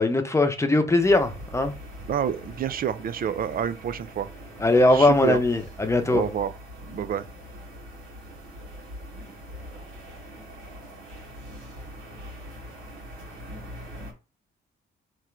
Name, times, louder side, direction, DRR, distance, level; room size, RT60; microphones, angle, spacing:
voice 1, 0.0-1.7 4.6-6.2, left 2 dB, 15° left, 0.8 m, -20 dB
sound 1, 1.0-14.1, equal, 80° right, 1.9 m, -42 dB
voice 2, 2.1-4.3 4.9-5.4 6.1-6.5 6.9-7.3, right 8 dB, 45° right, 0.5 m, -28 dB
3.6 x 3.1 x 4.5 m
cardioid pair, 90°, 20 cm